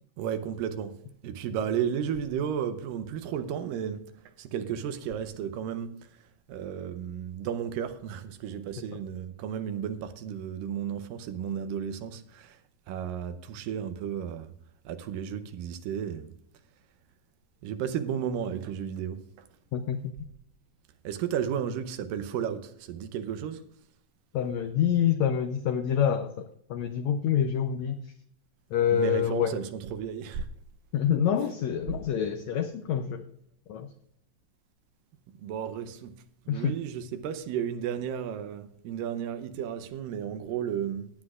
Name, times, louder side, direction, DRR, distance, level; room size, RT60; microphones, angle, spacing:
voice 1, 0.2-0.9 1.2-4.0 4.4-5.9 6.5-12.6 12.9-14.5 14.9-16.3 17.6-19.2 21.0-23.6 28.9-30.5 35.4-36.1 36.5-41.1, right 8 dB, 90° right, 2.4 m, -33 dB
voice 2, 19.7-20.1 24.3-28.1 28.7-29.6 30.9-33.2 33.7-33.9 36.5-36.8, left 9 dB, 80° left, 1.6 m, -27 dB
17.5 x 9.7 x 2.4 m
omnidirectional pair, 3.9 m